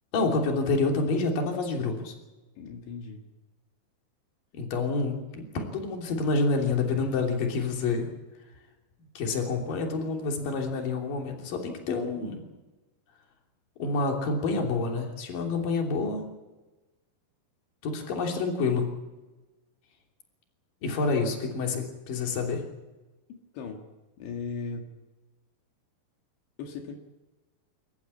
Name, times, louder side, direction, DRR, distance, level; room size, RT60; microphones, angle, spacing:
voice 1, 0.1-2.1 4.5-8.1 9.1-12.4 13.8-16.3 17.8-18.9 20.8-22.6, left 3 dB, 50° left, 1 dB, 4.5 m, -28 dB
voice 2, 2.6-3.2 23.3-23.8 24.2-24.9 26.6-26.9, left 4 dB, 80° left, 2 dB, 4.2 m, -37 dB
28.0 x 14.5 x 8.5 m, 1.1 s
omnidirectional pair, 5.1 m